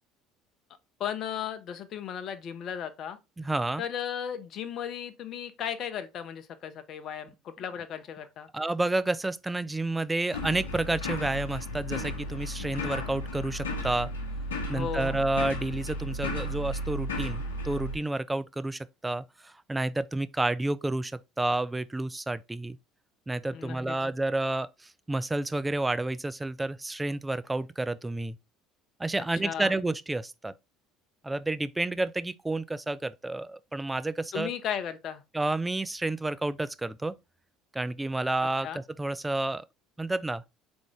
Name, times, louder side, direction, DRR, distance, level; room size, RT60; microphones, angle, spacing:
voice 1, 1.0-3.2 3.8-8.5 14.7-15.2 23.5-24.0 29.4-29.7 34.3-35.2 38.6-38.8, left 9 dB, 55° left, 0.6 m, -35 dB
voice 2, 3.4-3.8 8.5-14.1 14.7-21.1 21.4-22.8 23.3-28.4 29.0-30.5 31.2-34.5 35.3-37.1 37.7-39.7 40.0-40.4, right 2 dB, 15° right, 0.4 m, -30 dB
sound 1, 10.3-18.0, left 1 dB, 90° left, 0.8 m, -34 dB
3.8 x 3.5 x 3.3 m
hypercardioid pair, 70°, 0 cm